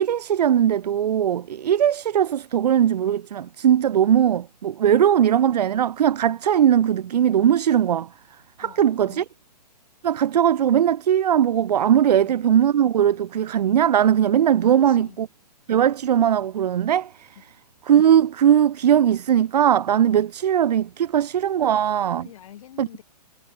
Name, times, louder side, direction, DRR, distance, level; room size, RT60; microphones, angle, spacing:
voice 1, 0.0-8.1 8.6-9.2 10.0-15.3 15.7-17.4 17.9-22.3 22.8-22.9, right 9 dB, 70° right, 0.7 m, -19 dB
voice 2, 8.6-9.2 12.1-12.2 14.6-15.2 17.3-17.4 22.2-23.0, left 11 dB, 50° left, 5.2 m, -45 dB
hypercardioid pair, 155°, 21 cm